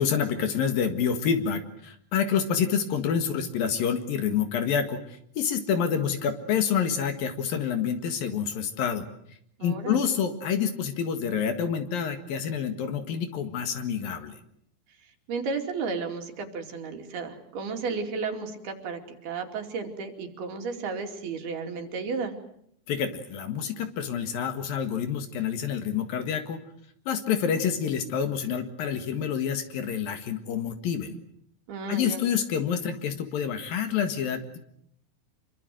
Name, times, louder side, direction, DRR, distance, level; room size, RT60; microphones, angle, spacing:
voice 1, 0.0-5.0 5.4-9.1 9.6-14.4 22.9-26.6 27.1-31.2 31.9-34.6, left 7 dB, 65° left, 8 dB, 3.4 m, -28 dB
voice 2, 9.6-10.1 15.3-22.3 31.7-32.3, right 4 dB, 70° right, 4 dB, 4.5 m, -33 dB
26.5 x 23.5 x 7.7 m, 0.70 s
omnidirectional pair, 4.6 m